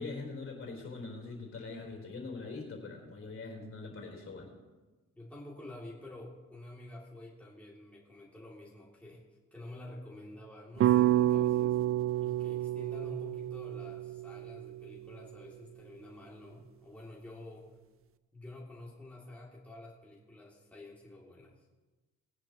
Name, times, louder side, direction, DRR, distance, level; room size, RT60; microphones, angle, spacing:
voice 1, 0.0-4.5, left 3 dB, 45° left, 1 dB, 3.9 m, -42 dB
voice 2, 5.1-9.2 9.5-11.8 12.2-17.7 18.3-21.7, left 1 dB, 5° left, -5 dB, 2.5 m, -49 dB
sound 1, 10.8-15.1, right 13 dB, 45° right, 0.4 m, -29 dB
20.0 x 10.5 x 2.9 m, 1.2 s
cardioid pair, 90°, 30 cm